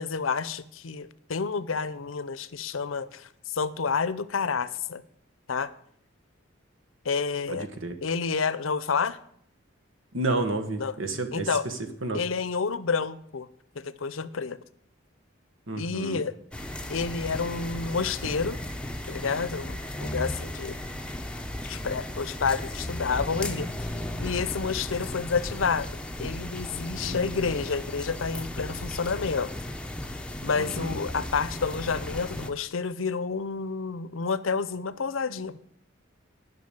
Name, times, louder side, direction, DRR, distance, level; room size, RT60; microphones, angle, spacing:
voice 1, 0.0-5.0 5.5-5.7 7.0-7.7 8.0-9.2 10.8-10.9 11.3-11.7 12.1-13.5 13.8-14.6 15.8-16.4 16.9-18.6 19.1-20.8 21.6-23.7 24.2-25.9 26.2-29.5 30.4-35.6, left 5 dB, 85° left, 16 dB, 0.7 m, -29 dB
voice 2, 7.5-7.9 10.1-11.7 12.0-12.2 15.7-16.2 27.0-27.4 30.6-31.0, right 2 dB, 80° right, 6 dB, 1.5 m, -31 dB
sound 1, 16.5-32.5, left 1 dB, 5° left, 0.7 m, -35 dB
10.5 x 6.2 x 8.9 m, 0.67 s
head